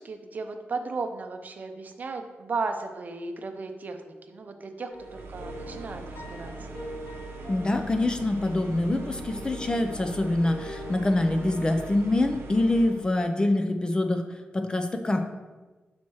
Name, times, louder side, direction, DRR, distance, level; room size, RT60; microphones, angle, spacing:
voice 1, 0.0-6.7, right 4 dB, 45° right, 6 dB, 0.6 m, -35 dB
sound 1, 4.9-12.0, left 1 dB, 65° left, 0.8 m, -43 dB
sound 2, 5.0-13.0, right 3 dB, 90° right, 0.7 m, -42 dB
voice 2, 7.5-14.2 14.5-15.2, left 2 dB, 20° left, 6 dB, 0.4 m, -25 dB
6.1 x 4.3 x 4.6 m, 1.2 s
wide cardioid pair, 155°, 4 cm